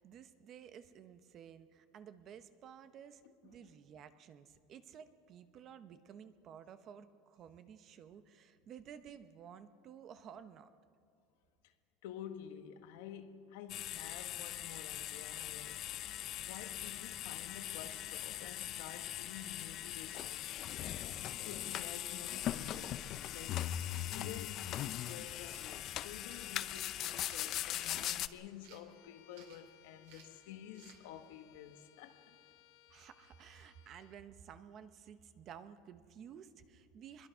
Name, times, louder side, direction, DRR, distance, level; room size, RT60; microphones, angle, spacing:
voice 1, 0.0-10.7 27.5-27.6 32.9-37.3, right 8 dB, 35° right, 0.9 m, -54 dB
voice 2, 3.2-3.8 11.6-11.7 12.0-23.7 24.0-32.4, left 10 dB, 85° left, 1.4 m, -51 dB
sound 1, 13.7-28.3, left 12 dB, 40° left, 0.5 m, -40 dB
sound 2, 25.3-25.7 26.3-26.5 27.1-28.1 28.6-28.9 29.3-29.7 30.0-30.4 30.7-31.0, right 8 dB, 70° right, 3.0 m, -60 dB
Bowed string instrument, 28.9-34.3, left 11 dB, 65° left, 1.3 m, -65 dB
25.0 x 22.0 x 5.7 m
cardioid pair, 165°, 0 cm